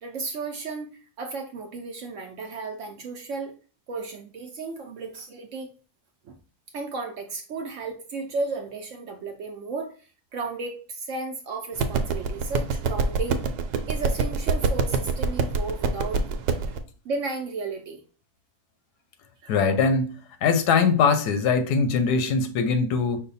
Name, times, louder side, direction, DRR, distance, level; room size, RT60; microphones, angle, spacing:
voice 1, 0.0-3.6 3.9-5.7 6.2-6.4 6.7-13.4 13.9-16.2 17.0-18.0 19.4-19.6, right 3 dB, 65° right, 0.8 m, -34 dB
sound 1, 11.8-16.8, right 4 dB, 85° right, 1.1 m, -25 dB
voice 2, 19.5-20.1 20.4-23.2, left 5 dB, 85° left, 1.3 m, -21 dB
5.5 x 2.2 x 4.0 m
omnidirectional pair, 1.7 m